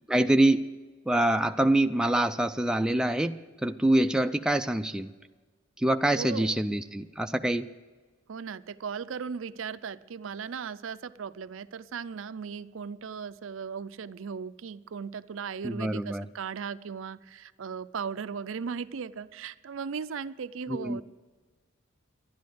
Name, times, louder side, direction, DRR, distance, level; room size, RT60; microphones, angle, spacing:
voice 1, 0.1-0.6 1.1-5.1 5.8-7.7 15.6-16.3 20.7-21.0, right 1 dB, 5° right, 7 dB, 0.3 m, -25 dB
voice 2, 6.1-6.6 8.3-21.0, right 6 dB, 65° right, 14 dB, 0.5 m, -37 dB
12.0 x 10.5 x 7.8 m, 1.4 s
head